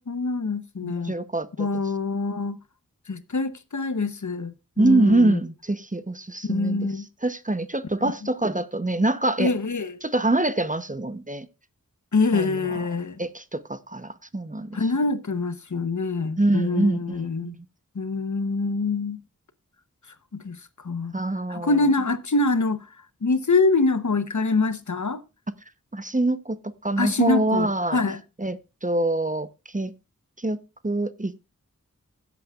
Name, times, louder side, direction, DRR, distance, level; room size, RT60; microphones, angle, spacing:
voice 1, 0.0-1.1 1.6-2.6 3.1-5.4 6.4-7.1 8.0-8.1 9.4-9.9 12.1-13.2 14.7-17.5 17.9-19.2 20.3-21.1 21.5-22.9 23.2-25.2 27.0-28.2, left 3 dB, 65° left, 0.9 m, -25 dB
voice 2, 0.8-1.7 4.8-6.9 7.2-9.5 10.0-11.5 12.3-12.8 13.2-14.8 16.4-17.6 21.1-21.7 25.9-28.0 28.4-29.5 29.7-29.9 30.4-31.4, right 2 dB, 25° right, 0.8 m, -25 dB
16.5 x 8.3 x 2.4 m
wide cardioid pair, 55°, 32 cm